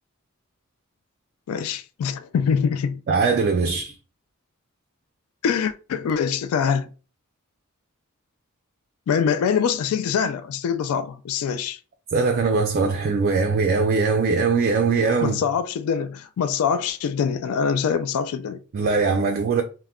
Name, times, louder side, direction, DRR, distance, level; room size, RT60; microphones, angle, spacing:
voice 1, 1.5-3.0 5.4-6.9 9.1-11.8 15.2-18.6, left 7 dB, 75° left, 0.3 m, -24 dB
voice 2, 3.1-3.9 12.1-15.4 18.7-19.6, right 4 dB, 45° right, 0.3 m, -21 dB
3.4 x 2.1 x 2.3 m
head